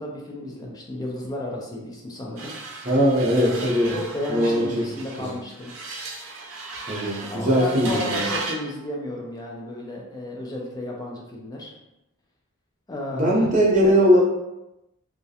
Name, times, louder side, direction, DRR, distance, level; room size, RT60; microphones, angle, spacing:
voice 1, 0.0-2.5 3.3-5.7 7.2-11.7 12.9-13.5 13.8-13.9, left 1 dB, 20° left, -1 dB, 0.3 m, -33 dB
sound 1, 2.4-8.7, right 3 dB, 80° right, 0.5 m, -35 dB
voice 2, 2.8-3.9 4.3-4.9 5.2-5.3 6.9-8.3 13.1-14.2, equal, 35° right, -4 dB, 0.6 m, -20 dB
2.3 x 2.1 x 2.7 m, 0.92 s
head